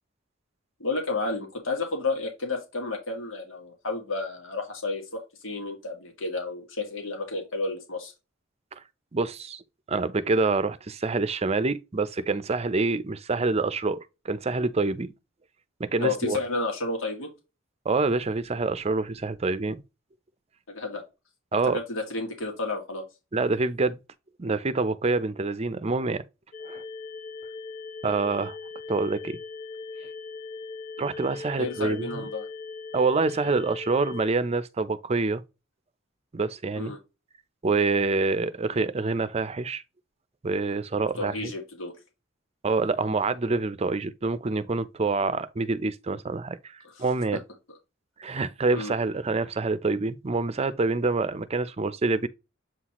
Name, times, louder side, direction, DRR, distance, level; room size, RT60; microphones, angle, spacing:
voice 1, 0.8-8.1 16.0-17.3 20.7-21.0 21.7-23.0 31.6-32.5 36.8-37.0 41.2-41.9 46.9-47.0 48.7-48.9, left 3 dB, 85° left, 2.2 m, -31 dB
voice 2, 9.1-9.6 9.9-15.1 15.8-16.4 17.8-19.8 21.5-21.8 23.3-24.0 24.4-26.2 26.6-26.8 28.0-28.6 28.9-29.4 31.0-32.3 32.9-35.4 36.3-36.9 37.6-39.8 40.4-41.5 42.6-47.4 48.2-52.3, right 3 dB, 30° right, 0.5 m, -26 dB
sound 1, 26.5-34.3, left 4 dB, 35° left, 0.6 m, -39 dB
7.9 x 4.0 x 3.0 m
head